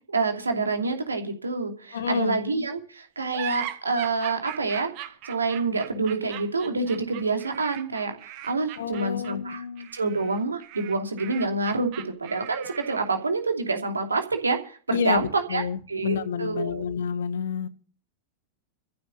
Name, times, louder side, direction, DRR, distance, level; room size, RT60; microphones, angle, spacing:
voice 1, 0.0-4.9 5.2-9.6 9.9-16.8, right 3 dB, 75° right, 2.7 m, -27 dB
voice 2, 1.9-2.4 8.8-9.9 14.9-17.7, left 7 dB, 65° left, 1.6 m, -29 dB
sound 1, 3.3-13.2, right 13 dB, 45° right, 2.0 m, -40 dB
14.5 x 7.9 x 8.5 m
figure-of-eight pair, 90°, 0 cm